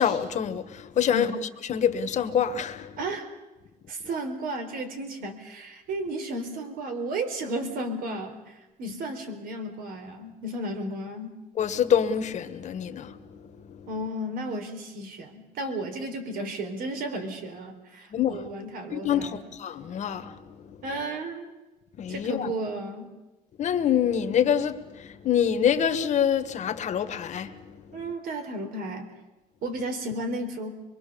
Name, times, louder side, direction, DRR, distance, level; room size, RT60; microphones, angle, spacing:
voice 1, 0.0-1.3 1.7-3.0 11.6-13.4 13.7-13.9 18.1-18.4 18.9-20.8 22.0-22.5 23.6-28.0, left 8 dB, 50° left, 1.5 m, -26 dB
voice 2, 3.0-3.3 3.9-11.4 13.9-19.5 20.8-21.5 22.1-23.1 27.9-29.1 29.6-30.7, right 1 dB, 75° right, 4.1 m, -33 dB
25.0 x 22.5 x 7.0 m
cardioid pair, 145°, 15 cm